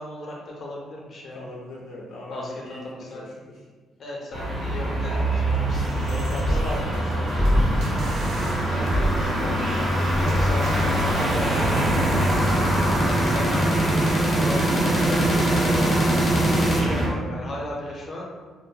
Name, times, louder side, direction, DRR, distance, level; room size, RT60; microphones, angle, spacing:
voice 1, 0.0-1.4 2.3-3.3 4.0-6.6 8.7-12.0 13.2-15.9 16.5-18.2, left 1 dB, 45° left, -3 dB, 0.8 m, -36 dB
voice 2, 1.3-2.8 3.1-3.6 6.0-7.7 12.1-12.7, left 1 dB, 75° left, -4 dB, 0.4 m, -37 dB
sound 1, 4.3-17.1, right 1 dB, 35° right, 0.9 m, -24 dB
sound 2, 5.7-11.3, equal, 70° right, 0.6 m, -29 dB
sound 3, 8.7-16.8, right 1 dB, 10° left, 0.6 m, -26 dB
2.3 x 2.1 x 3.3 m, 1.5 s
cardioid pair, 90°, 0 cm